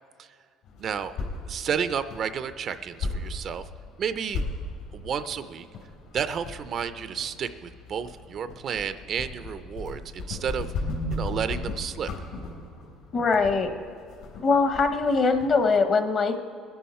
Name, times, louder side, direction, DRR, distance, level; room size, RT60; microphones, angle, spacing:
sound 1, 0.6-15.6, left 2 dB, 75° left, 3.8 m, -37 dB
voice 1, 0.8-1.1 1.5-3.6 4.0-4.4 4.9-5.7 6.1-10.7 11.1-12.1, right 7 dB, 40° right, 12 dB, 0.4 m, -31 dB
voice 2, 13.1-13.7 14.4-16.4, left 4 dB, 35° left, 8 dB, 0.9 m, -22 dB
21.0 x 11.0 x 4.2 m, 2.2 s
cardioid pair, 145°, 0 cm